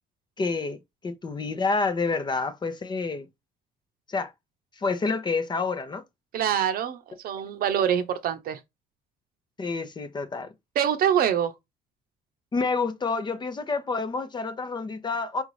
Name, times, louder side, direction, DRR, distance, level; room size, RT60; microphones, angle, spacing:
voice 1, 0.4-0.8 1.0-3.3 4.1-4.3 4.8-6.0 9.6-10.5 12.5-15.4, left 4 dB, 25° left, 0.7 m, -28 dB
voice 2, 6.3-8.6 10.8-11.5, right 9 dB, 60° right, 0.7 m, -25 dB
4.9 x 2.6 x 3.1 m
cardioid pair, 110°, 17 cm